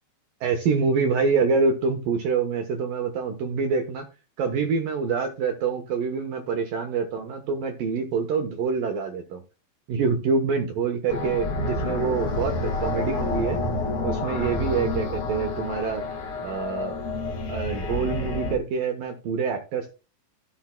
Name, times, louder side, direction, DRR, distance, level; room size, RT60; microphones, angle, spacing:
voice 1, 0.4-4.1 4.4-9.4 9.9-13.6 14.0-16.0 16.4-17.0 17.5-19.9, right 5 dB, 75° right, 4 dB, 2.1 m, -26 dB
sound 1, 11.1-18.6, left 3 dB, 70° left, 1.3 m, -29 dB
16.0 x 7.3 x 2.3 m, 0.30 s
omnidirectional pair, 5.5 m